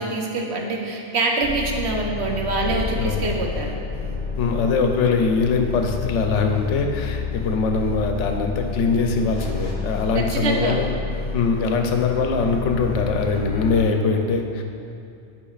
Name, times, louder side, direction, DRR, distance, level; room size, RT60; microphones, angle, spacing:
voice 1, 0.0-3.8 10.2-10.8, right 3 dB, 65° right, 0 dB, 1.0 m, -25 dB
sound 1, 1.4-13.9, left 4 dB, 50° left, 1.0 m, -30 dB
voice 2, 4.4-10.9 11.3-14.6, left 4 dB, 85° left, 4 dB, 0.9 m, -22 dB
10.0 x 5.2 x 2.4 m, 2.6 s
omnidirectional pair, 1.2 m